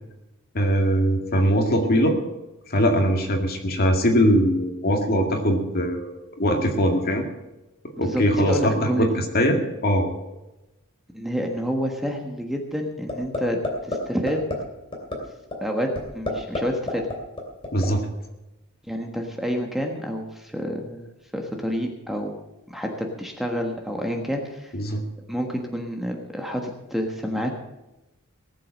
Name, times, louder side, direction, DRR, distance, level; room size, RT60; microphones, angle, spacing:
voice 1, 0.5-2.2 2.7-7.2 8.0-9.1 9.3-10.1 17.7-18.1 24.7-25.0, equal, 45° left, 3 dB, 2.1 m, -21 dB
voice 2, 8.0-9.1 11.1-14.4 15.6-15.9 16.1-17.1 18.9-21.1 21.3-22.4 22.7-24.7 25.3-27.5, equal, ahead, 2 dB, 1.4 m, -28 dB
sound 1, 13.1-13.4 13.6-14.0 14.3-14.5 14.9-15.2 15.5-15.6 16.0-16.6 16.9-17.9, left 2 dB, 25° left, 3.0 m, -27 dB
18.5 x 7.7 x 6.4 m, 1.0 s
head